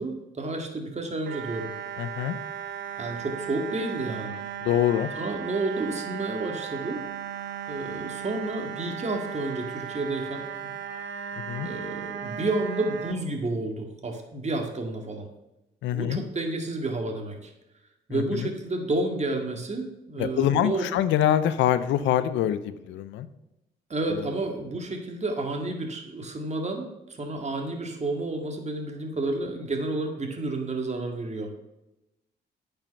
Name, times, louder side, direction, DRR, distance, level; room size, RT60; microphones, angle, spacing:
voice 1, 0.0-1.7 3.0-4.3 5.2-7.0 7.7-10.7 11.1-11.3 11.6-15.3 15.9-17.5 18.1-20.8 23.9-31.5, right 2 dB, 35° right, 3 dB, 2.1 m, -31 dB
sound 1, 1.3-13.1, right 8 dB, 75° right, 0.9 m, -36 dB
voice 2, 2.0-2.4 4.6-5.1 11.5-11.7 15.8-16.2 18.1-18.5 20.2-23.3 24.0-24.3, left 11 dB, 90° left, 13 dB, 0.6 m, -25 dB
8.8 x 5.9 x 5.9 m, 0.93 s
supercardioid pair, 60°, 19 cm